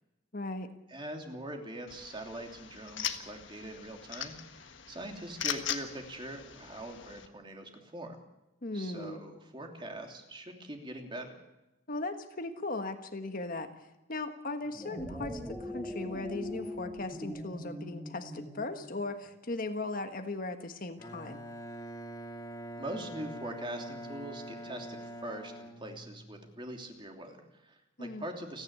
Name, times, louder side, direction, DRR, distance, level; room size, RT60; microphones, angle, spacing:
voice 1, 0.3-0.7 8.6-9.2 11.9-21.4 28.0-28.2, left 2 dB, 45° left, 7 dB, 1.5 m, -38 dB
voice 2, 0.9-8.2 8.7-11.3 22.8-28.6, right 1 dB, 25° right, 3 dB, 3.0 m, -43 dB
sound 1, 1.9-7.3, left 9 dB, 65° left, 1.6 m, -40 dB
sound 2, 14.6-19.2, left 1 dB, 5° right, 3.4 m, -41 dB
Bowed string instrument, 21.0-26.5, right 1 dB, 20° left, 1.7 m, -44 dB
30.0 x 10.5 x 8.3 m, 0.97 s
head